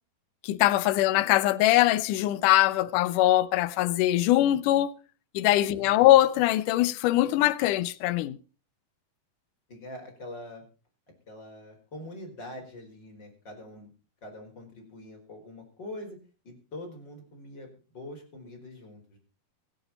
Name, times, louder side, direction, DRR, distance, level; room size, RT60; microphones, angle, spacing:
voice 1, 0.4-4.9 5.3-8.4, left 15 dB, 75° left, 2.0 m, -22 dB
voice 2, 5.7-6.1 9.7-10.6 11.3-13.9 14.2-16.2 16.4-19.2, left 1 dB, 30° left, 5.1 m, -44 dB
24.5 x 9.1 x 4.2 m
omnidirectional pair, 4.4 m